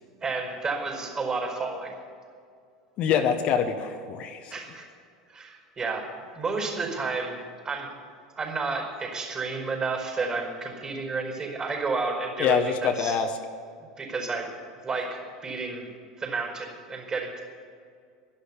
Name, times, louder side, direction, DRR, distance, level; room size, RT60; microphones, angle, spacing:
voice 1, 0.2-1.9 4.5-4.9 5.3-7.4 7.6-7.9 8.4-13.2 14.0-14.5 14.8-15.9 16.2-17.4, right 4 dB, 30° right, 2 dB, 4.8 m, -31 dB
voice 2, 3.0-4.5 12.4-13.3, left 7 dB, 45° left, 6 dB, 1.0 m, -25 dB
12.0 x 11.5 x 8.3 m, 2.3 s
figure-of-eight pair, 75°, 3 cm